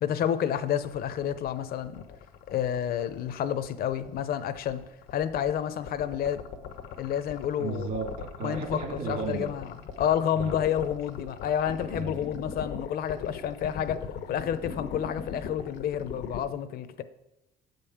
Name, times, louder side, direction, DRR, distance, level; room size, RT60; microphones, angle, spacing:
voice 1, 0.0-2.0 2.5-4.8 5.1-6.4 7.0-7.9 8.4-8.8 9.1-17.0, left 9 dB, 60° left, 0.7 m, -30 dB
sound 1, 0.6-16.4, left 7 dB, 90° left, 1.0 m, -39 dB
voice 2, 7.6-9.5 10.3-10.6 11.8-12.3, right 4 dB, 65° right, 2.0 m, -35 dB
7.6 x 5.3 x 7.2 m
cardioid pair, 110°, 17 cm